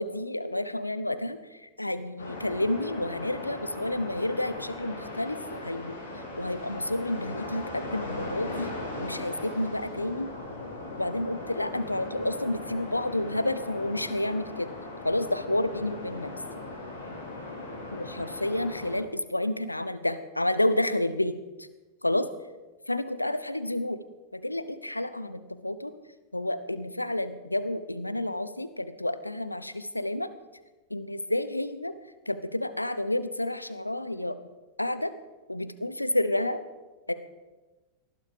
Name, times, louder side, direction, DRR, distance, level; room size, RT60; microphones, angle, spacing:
voice 1, 0.0-6.0 6.4-8.7 9.0-10.3 11.0-14.7 15.0-16.3 17.9-21.3 22.0-22.3 22.9-24.0 24.3-25.9 26.3-30.3 30.9-31.9 32.3-34.4 34.8-35.1 35.5-36.6 37.1-37.2, left 1 dB, 85° left, 12 dB, 0.8 m, -30 dB
sound 1, 2.2-19.0, left 2 dB, 70° left, 5.1 m, -39 dB
19.0 x 11.5 x 5.0 m, 1.1 s
figure-of-eight pair, 90°, 0 cm